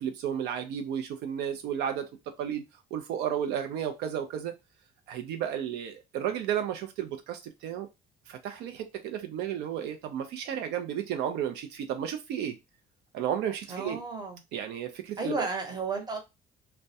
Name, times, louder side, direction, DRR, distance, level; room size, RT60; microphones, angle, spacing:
voice 1, 0.0-2.1 2.4-2.6 2.9-4.5 5.1-7.9 8.3-12.6 13.1-14.0 14.5-15.5, right 9 dB, 80° right, 0.4 m, -33 dB
voice 2, 13.7-14.4 15.2-16.2, right 3 dB, 25° right, 0.8 m, -32 dB
2.2 x 2.1 x 2.6 m
cardioid pair, 110°, 17 cm